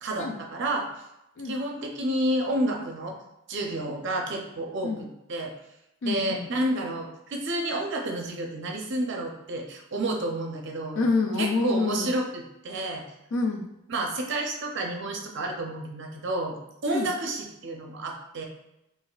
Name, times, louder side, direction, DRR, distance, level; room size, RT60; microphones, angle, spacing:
voice 1, 0.0-0.9 1.4-3.1 3.5-4.9 5.3-5.5 6.0-11.0 11.4-13.0 13.9-16.6 16.8-18.5, right 1 dB, 55° right, 1 dB, 0.5 m, -30 dB
voice 2, 6.0-6.5 11.0-12.1 13.3-13.7 16.9-17.1, left 3 dB, 60° left, 3 dB, 0.4 m, -27 dB
4.0 x 2.4 x 2.3 m, 0.88 s
head